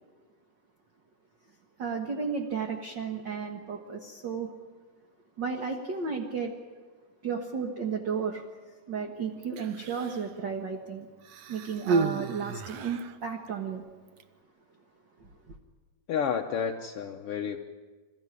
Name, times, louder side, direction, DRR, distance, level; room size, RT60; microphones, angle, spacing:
voice 1, 1.8-4.5 5.4-6.5 7.2-8.4 8.9-11.1 11.5-13.8 15.2-15.3, right 6 dB, 50° right, 3 dB, 1.5 m, -33 dB
Human voice, 9.4-10.3 11.2-13.2 14.1-14.2, right 4 dB, 70° right, 1.6 m, -32 dB
voice 2, 16.1-17.6, left 7 dB, 75° left, 3 dB, 1.3 m, -30 dB
27.0 x 14.5 x 9.9 m, 1.4 s
omnidirectional pair, 3.9 m